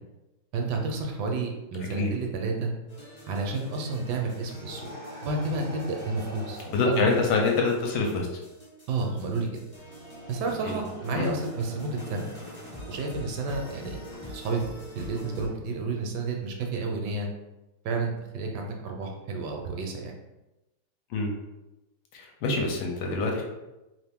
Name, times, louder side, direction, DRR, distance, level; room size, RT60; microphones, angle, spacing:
voice 1, 0.5-2.7 3.3-4.9 5.2-7.1 8.9-9.5 10.3-12.3 12.9-17.3 17.8-20.1, right 3 dB, 75° right, 2 dB, 1.1 m, -31 dB
sound 1, 2.9-15.5, left 1 dB, 20° left, 0.6 m, -45 dB
sound 2, 4.6-6.8 9.8-15.4, right 1 dB, 60° right, 0.6 m, -46 dB
voice 2, 6.7-8.3 10.6-10.8 11.1-11.3 21.1-21.3 22.1-23.4, left 3 dB, 70° left, 0 dB, 1.1 m, -26 dB
3.0 x 2.5 x 3.4 m, 1.0 s
omnidirectional pair, 1.9 m